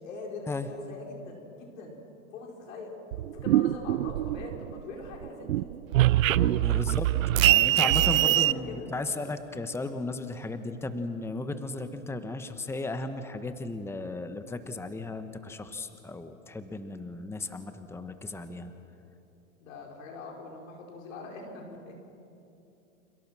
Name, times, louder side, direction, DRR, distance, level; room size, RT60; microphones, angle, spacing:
voice 1, 0.0-0.5 0.9-2.0 2.3-2.9 3.3-5.7 6.2-6.6 7.7-8.9 19.6-22.0, left 3 dB, 70° left, 0 dB, 5.8 m, -42 dB
sound 1, 3.1-4.8 5.1-8.5, right 14 dB, 70° right, 0.7 m, -23 dB
voice 2, 6.6-7.1 7.4-18.7, left 2 dB, 5° left, 9 dB, 1.3 m, -35 dB
29.5 x 29.0 x 6.3 m, 2.8 s
hypercardioid pair, 110°, 41 cm